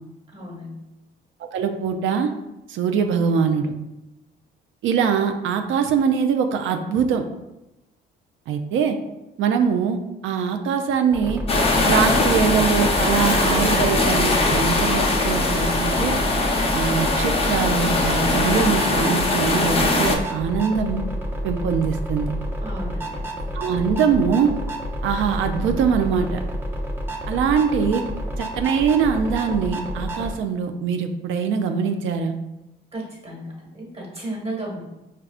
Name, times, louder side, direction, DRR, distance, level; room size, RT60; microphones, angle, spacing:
voice 1, 0.3-0.7 22.6-23.4 32.9-34.8, right 1 dB, 30° right, -3 dB, 1.4 m, -34 dB
voice 2, 1.5-2.3 2.7-3.7 4.8-7.2 8.5-9.0 9.4-10.0 10.2-11.4 11.8-16.2 16.7-21.0 21.4-22.3 23.5-24.5 25.0-26.4 27.3-28.0 28.4-32.3, right 6 dB, 80° right, 6 dB, 0.4 m, -22 dB
sound 1, 11.1-30.3, equal, 10° right, 0.6 m, -29 dB
sound 2, 11.5-20.2, left 2 dB, 30° left, 0.6 m, -21 dB
4.9 x 2.2 x 2.4 m, 0.95 s
cardioid pair, 90°, 20 cm